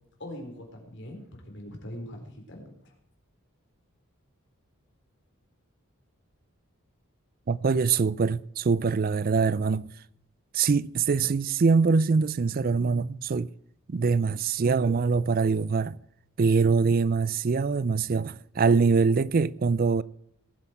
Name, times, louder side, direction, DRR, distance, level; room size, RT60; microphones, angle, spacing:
voice 1, 0.2-2.7, left 1 dB, 55° left, 4.0 m, -41 dB
voice 2, 7.5-9.9 10.5-13.5 13.9-16.0 16.4-20.0, right 5 dB, 40° right, 0.4 m, -23 dB
19.5 x 8.0 x 4.6 m
head